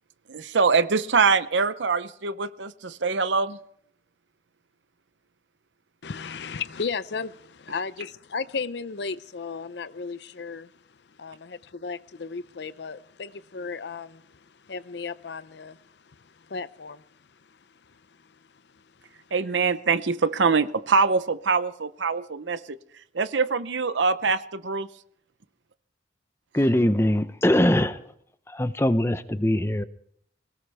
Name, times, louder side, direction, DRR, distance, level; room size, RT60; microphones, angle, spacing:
voice 1, 0.3-3.6 19.3-22.8 23.1-24.9, right 4 dB, 80° right, 0.7 m, -24 dB
voice 2, 6.0-10.8 11.1-19.2, left 5 dB, 70° left, 0.6 m, -36 dB
voice 3, 26.5-28.0 28.5-29.8, left 1 dB, 15° left, 0.7 m, -22 dB
22.0 x 19.0 x 3.5 m
head